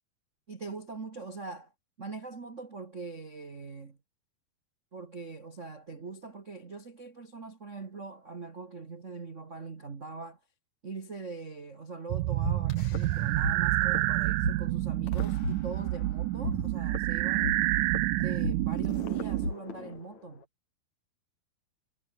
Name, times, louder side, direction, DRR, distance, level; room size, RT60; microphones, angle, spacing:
voice 1, 0.5-1.7 2.0-4.0 4.9-10.4 10.8-17.6 18.1-20.4, right 4 dB, 65° right, 0.7 m, -42 dB
sound 1, 12.1-19.5, right 16 dB, 80° right, 1.9 m, -28 dB
sound 2, 12.4-13.5 13.8-14.0 14.4-14.5 15.1-16.1 16.4-20.4, left 7 dB, 50° left, 3.8 m, -38 dB
omnidirectional pair, 4.5 m